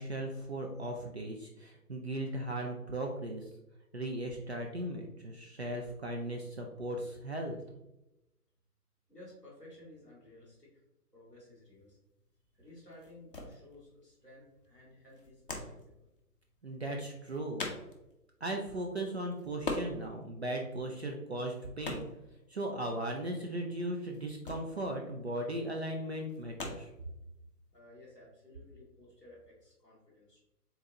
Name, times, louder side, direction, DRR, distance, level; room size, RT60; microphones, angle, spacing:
voice 1, 0.0-3.5 3.9-7.6 16.6-17.6 18.4-22.0 22.5-26.9, right 1 dB, 45° right, 1 dB, 0.5 m, -37 dB
voice 2, 9.1-10.7 11.1-12.0 12.5-16.1 27.7-30.4, left 1 dB, ahead, -17 dB, 0.7 m, -55 dB
sound 1, 11.5-27.8, left 2 dB, 35° left, 0.6 m, -44 dB
4.3 x 3.8 x 2.8 m, 0.92 s
figure-of-eight pair, 140°, 47 cm